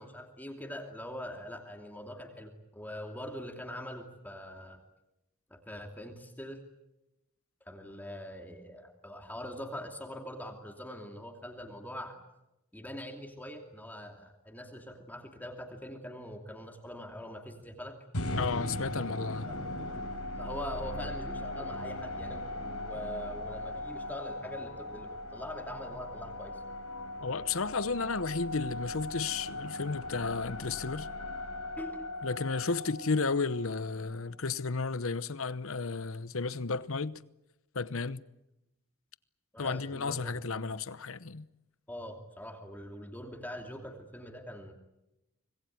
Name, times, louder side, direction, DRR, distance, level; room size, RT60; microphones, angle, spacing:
voice 1, 0.0-4.8 5.5-6.6 7.7-12.2 12.7-17.9 19.5-19.6 20.3-26.6 31.8-32.1 39.5-40.4 41.9-44.7, equal, 10° left, 2.7 m, -43 dB
sound 1, 18.1-34.3, left 1 dB, 90° left, 6.8 m, -39 dB
voice 2, 18.3-19.5 27.2-31.1 32.2-37.2 37.7-38.2 39.6-41.4, left 4 dB, 60° left, 0.9 m, -33 dB
25.5 x 20.5 x 9.4 m
head